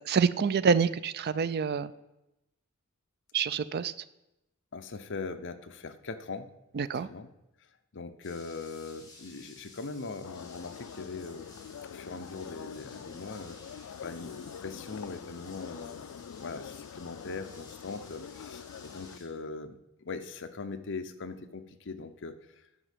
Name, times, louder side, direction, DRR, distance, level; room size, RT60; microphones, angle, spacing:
voice 1, 0.1-1.9 3.3-3.9 6.7-7.1, right 6 dB, 50° right, 16 dB, 0.4 m, -27 dB
voice 2, 4.7-6.5 7.0-7.3 7.9-11.5 11.8-13.6 14.0-22.4, left 4 dB, 60° left, 8 dB, 0.8 m, -41 dB
sound 1, 8.2-19.2, left 2 dB, 20° left, 2.7 m, -55 dB
sound 2, 10.2-19.2, left 7 dB, 85° left, 0.4 m, -45 dB
9.8 x 5.1 x 7.3 m, 0.91 s
head